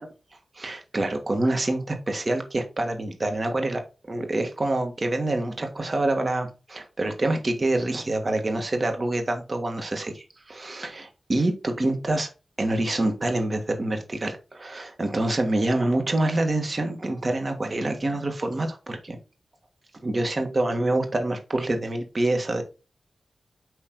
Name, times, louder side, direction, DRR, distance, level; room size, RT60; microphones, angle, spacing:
voice 1, 0.6-3.8 4.1-12.3 12.6-19.2 20.0-22.6, right 2 dB, 50° right, 4 dB, 1.7 m, -26 dB
9.4 x 3.1 x 3.9 m, 0.32 s
cardioid pair, 45°, 0 cm